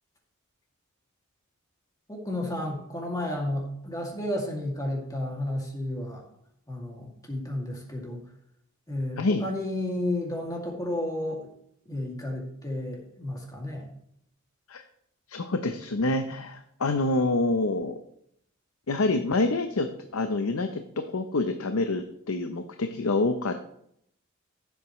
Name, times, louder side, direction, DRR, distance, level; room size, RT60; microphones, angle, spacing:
voice 1, 2.1-6.2 6.7-8.2 8.9-11.5 11.9-13.9, left 1 dB, 15° left, -1 dB, 2.3 m, -32 dB
voice 2, 15.3-17.9 18.9-23.6, left 2 dB, 90° left, 7 dB, 0.7 m, -27 dB
14.5 x 8.0 x 3.1 m, 0.73 s
head